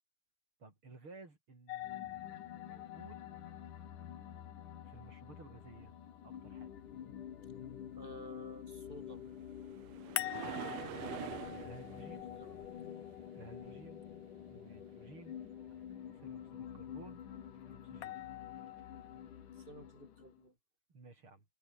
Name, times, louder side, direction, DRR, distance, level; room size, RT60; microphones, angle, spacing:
voice 1, 0.6-3.2 4.8-5.9 6.2-6.7 11.6-12.3 13.3-14.0 14.5-15.4 16.1-17.2 17.7-18.2 20.9-21.4, right 3 dB, 30° right, 5.5 m, -56 dB
sound 1, 1.7-6.7 10.2-14.3 18.0-19.2, left 15 dB, 75° left, 2.9 m, -47 dB
sound 2, 1.8-20.4, left 9 dB, 55° left, 3.4 m, -49 dB
voice 2, 7.9-9.2 12.0-12.6 14.5-14.7 19.6-20.5, right 1 dB, 10° right, 6.2 m, -53 dB
sound 3, 8.9-14.2 18.1-18.2 18.8-18.9, right 13 dB, 85° right, 1.5 m, -47 dB
omnidirectional pair, 4.5 m